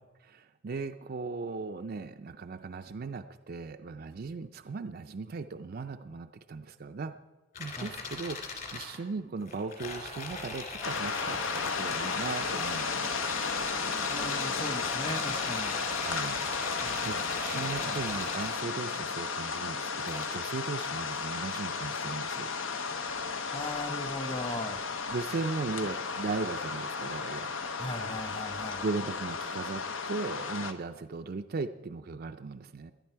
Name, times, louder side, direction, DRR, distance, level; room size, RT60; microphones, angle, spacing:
voice 1, 0.2-7.1 7.6-13.1 16.0-22.5 25.1-27.5 28.8-32.9, right 4 dB, 50° right, 7 dB, 0.4 m, -37 dB
sound 1, 7.5-9.0 9.4-18.6 20.0-20.3, left 3 dB, 45° left, 2.8 m, -39 dB
sound 2, 10.8-30.7, left 5 dB, 80° left, 0.9 m, -34 dB
voice 2, 14.1-15.7 16.8-17.1 17.5-18.0 23.5-24.8 27.8-28.8, left 1 dB, 30° left, 8 dB, 1.2 m, -38 dB
18.5 x 11.5 x 4.6 m, 1.2 s
head